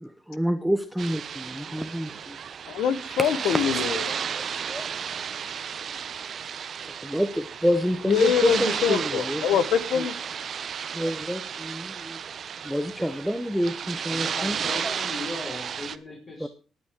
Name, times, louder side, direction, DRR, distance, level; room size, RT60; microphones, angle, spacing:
voice 1, 0.0-2.4 3.4-3.8 4.4-4.5 4.7-4.9 7.0-9.5 10.0-10.1 10.9-12.2 12.6-14.6 14.8-14.9 16.4-16.5, equal, ahead, 8 dB, 0.8 m, -28 dB
sound 1, 1.0-16.0, right 7 dB, 55° right, 0.6 m, -33 dB
voice 2, 2.7-4.0 8.1-10.1, left 8 dB, 85° left, 14 dB, 1.1 m, -24 dB
voice 3, 14.1-16.5, left 2 dB, 35° left, -4 dB, 4.4 m, -37 dB
18.5 x 8.9 x 3.7 m, 0.35 s
cardioid pair, 90°, 0 cm